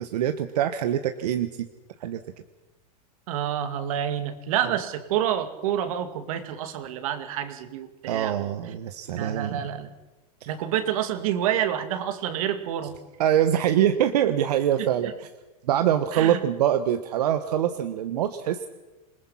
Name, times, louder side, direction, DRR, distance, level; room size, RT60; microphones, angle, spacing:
voice 1, 0.0-1.7 2.0-2.2 4.6-4.7 8.1-9.7 10.4-10.5 13.2-15.1 15.6-18.7, right 10 dB, 80° right, 9 dB, 1.3 m, -24 dB
voice 2, 3.3-8.5 9.2-9.9 10.5-12.9 16.1-16.4, right 10 dB, 60° right, 9 dB, 2.4 m, -28 dB
27.5 x 20.0 x 5.8 m, 1.1 s
supercardioid pair, 165°, 20 cm